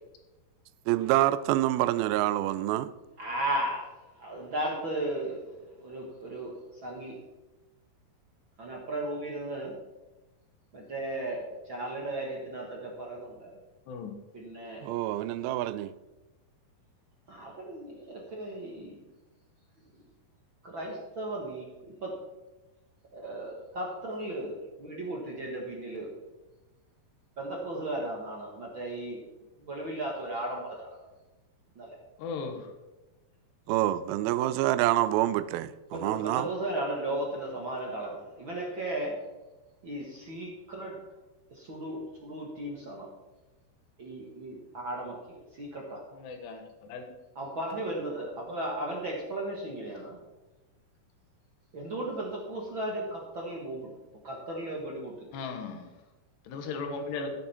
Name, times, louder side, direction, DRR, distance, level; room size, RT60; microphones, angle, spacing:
voice 1, 0.9-2.9 14.8-15.9 33.7-36.5, right 15 dB, 85° right, 2.1 m, -27 dB
voice 2, 3.2-7.2 8.6-9.8 10.7-13.5 14.3-14.8 17.3-19.0 20.6-22.2 23.1-26.1 27.4-29.2 29.6-30.9 31.7-32.0 35.9-39.2 39.8-41.0 41.5-43.1 44.0-46.0 47.3-50.2 51.7-53.9 54.2-55.3, right 1 dB, 55° right, 1.4 m, -36 dB
voice 3, 13.9-14.2 32.2-32.7 46.1-47.0 55.3-55.9 56.5-57.3, left 4 dB, 80° left, 3.6 m, -37 dB
14.0 x 9.1 x 4.3 m
omnidirectional pair, 4.8 m